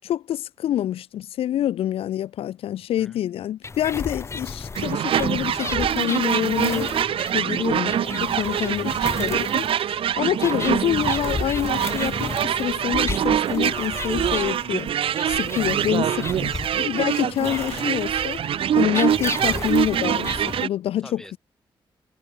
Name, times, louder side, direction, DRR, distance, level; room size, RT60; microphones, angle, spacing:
voice 1, 0.0-7.0 7.3-14.9 15.2-16.3 16.8-18.4 18.7-21.2, left 12 dB, 80° left, 0.4 m, -26 dB
sound 1, 3.6-20.6, left 4 dB, 30° left, 0.6 m, -34 dB
sound 2, 4.8-20.7, right 10 dB, 70° right, 0.5 m, -24 dB
voice 2, 8.5-8.9 16.1-16.7 21.0-21.4, left 1 dB, 5° left, 7.2 m, -45 dB
cardioid pair, 85°, 10 cm